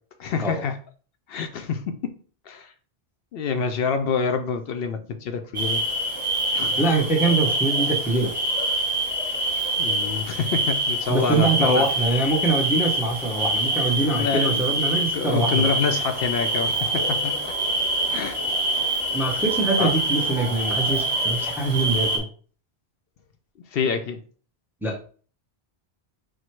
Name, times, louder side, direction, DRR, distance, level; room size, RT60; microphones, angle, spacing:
voice 1, 0.2-0.8 1.3-2.0 2.5-2.7 3.3-5.8 6.5-6.8 9.8-11.9 14.1-17.5 18.1-18.4 19.8-19.9 23.7-24.2, left 5 dB, 70° left, 7 dB, 0.7 m, -27 dB
sound 1, 5.5-22.2, right 1 dB, 30° right, 1.3 m, -25 dB
voice 2, 6.8-8.3 11.1-15.7 19.1-22.2 24.8-24.9, right 2 dB, ahead, -1 dB, 0.7 m, -23 dB
4.5 x 2.1 x 4.4 m, 0.42 s
omnidirectional pair, 1.0 m